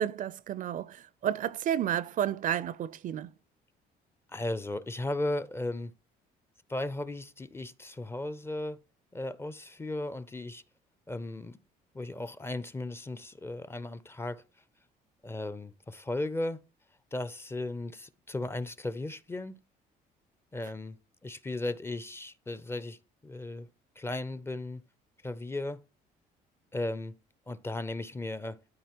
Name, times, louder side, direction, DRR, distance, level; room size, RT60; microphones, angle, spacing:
voice 1, 0.0-3.3, right 10 dB, 50° right, 0.4 m, -31 dB
voice 2, 4.3-5.9 6.7-8.8 9.1-10.6 11.1-11.6 11.9-14.4 15.2-16.6 17.1-19.5 20.5-21.0 21.2-23.7 24.0-24.8 25.2-25.8 26.7-27.1 27.5-28.6, left 2 dB, 15° left, 0.5 m, -36 dB
12.5 x 4.3 x 2.9 m
cardioid pair, 110°, 17 cm